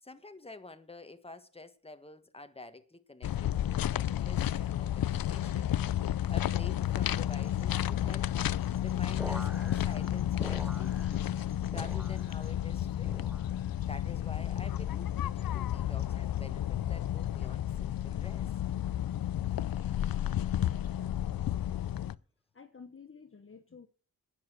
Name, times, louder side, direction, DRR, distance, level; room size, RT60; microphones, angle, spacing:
voice 1, 0.0-5.7 6.1-8.3 8.8-13.3 13.9-18.5, left 2 dB, 15° left, 1.4 m, -49 dB
sound 1, 3.2-22.1, left 11 dB, 70° left, 0.5 m, -32 dB
sound 2, 7.3-12.5, right 1 dB, 35° right, 4.4 m, -64 dB
sound 3, 9.2-11.4 11.7-12.5 13.0-13.7 14.4-14.8 15.7-16.1 17.0-17.3, equal, 5° right, 0.5 m, -47 dB
voice 2, 20.4-22.2 22.5-23.9, left 5 dB, 35° left, 1.1 m, -53 dB
10.5 x 8.9 x 6.1 m
cardioid pair, 75°, 36 cm